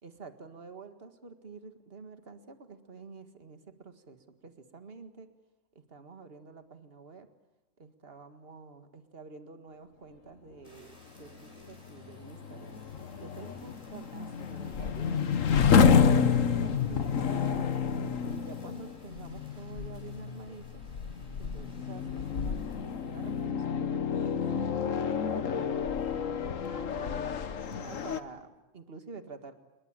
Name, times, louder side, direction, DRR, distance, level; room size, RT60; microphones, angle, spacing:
voice 1, 0.0-5.3 5.8-7.3 7.8-12.8 13.2-15.3 15.7-17.7 18.0-20.8 21.4-22.6 23.0-26.1 26.6-29.5, right 4 dB, 50° right, 9 dB, 2.0 m, -48 dB
Fire, 10.6-23.5, equal, 25° left, 7.3 m, -59 dB
sound 1, 11.2-28.2, left 6 dB, 90° left, 1.6 m, -29 dB
29.0 x 22.0 x 9.0 m, 0.98 s
omnidirectional pair, 1.3 m